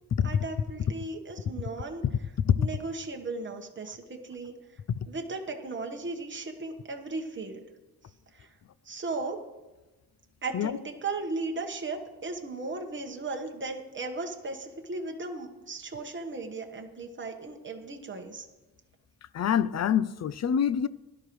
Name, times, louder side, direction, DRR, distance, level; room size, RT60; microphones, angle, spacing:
voice 1, 0.2-2.3 2.6-4.5 5.1-7.6 8.3-8.5 8.8-9.4 10.4-18.5, right 3 dB, 30° right, 1.2 m, -36 dB
voice 2, 19.3-20.9, left 8 dB, 45° left, 0.4 m, -25 dB
17.0 x 11.5 x 3.1 m
wide cardioid pair, 160°, 39 cm